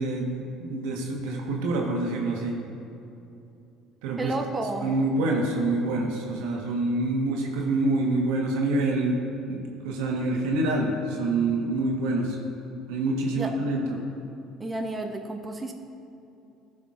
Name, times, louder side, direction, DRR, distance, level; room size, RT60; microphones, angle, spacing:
voice 1, 0.0-2.6 4.0-4.3 4.8-9.2 9.5-12.4 12.9-14.0, right 2 dB, 75° right, 0 dB, 1.2 m, -26 dB
voice 2, 4.2-4.9 13.3-13.5 14.6-15.7, right 2 dB, 20° right, 3 dB, 0.8 m, -31 dB
15.0 x 5.0 x 2.5 m, 2.8 s
hypercardioid pair, 70°, 0 cm